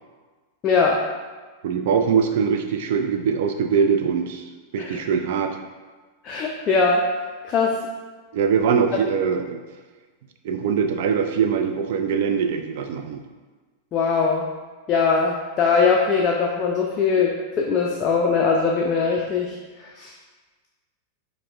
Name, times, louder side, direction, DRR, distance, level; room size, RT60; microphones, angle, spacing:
voice 1, 0.6-1.0 4.8-5.0 6.2-7.1 7.4-7.8 8.9-9.0 13.9-14.5 14.9-20.1, left 5 dB, 30° left, -1 dB, 0.4 m, -21 dB
voice 2, 1.6-4.5 4.7-5.6 8.3-9.6 10.4-13.2, right 6 dB, 55° right, 6 dB, 0.3 m, -22 dB
4.6 x 2.1 x 3.4 m, 1.3 s
figure-of-eight pair, 90°, 0 cm